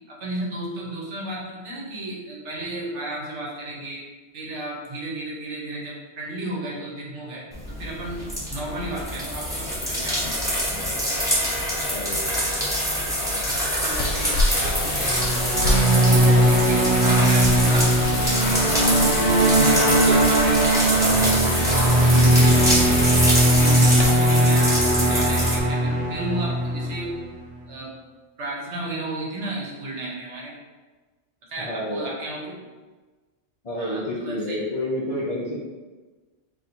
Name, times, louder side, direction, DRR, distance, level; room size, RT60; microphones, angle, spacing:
voice 1, 0.1-4.0 4.3-10.9 13.4-15.2 16.0-18.7 19.0-23.0 23.5-27.2 27.7-27.9 28.4-30.6 31.5-32.6 33.8-34.6, right 1 dB, 80° right, -3 dB, 1.1 m, -34 dB
sound 1, 7.5-25.6, equal, 5° right, 0.7 m, -25 dB
voice 2, 11.9-12.3 31.6-32.1 33.6-35.6, left 1 dB, 45° left, -6 dB, 0.5 m, -29 dB
Wind, 13.9-24.0, left 2 dB, 80° left, 0.9 m, -29 dB
sound 2, 15.0-27.5, right 1 dB, 40° right, 0.8 m, -19 dB
2.6 x 2.6 x 4.3 m, 1.3 s
omnidirectional pair, 1.2 m